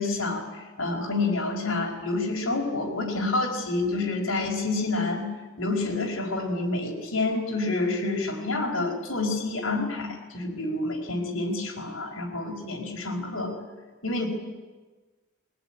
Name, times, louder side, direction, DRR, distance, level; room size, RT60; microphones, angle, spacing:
voice 1, 0.0-5.3 5.6-13.5 14.0-14.3, left 2 dB, 70° left, 2 dB, 4.9 m, -28 dB
21.5 x 19.0 x 10.0 m, 1.3 s
head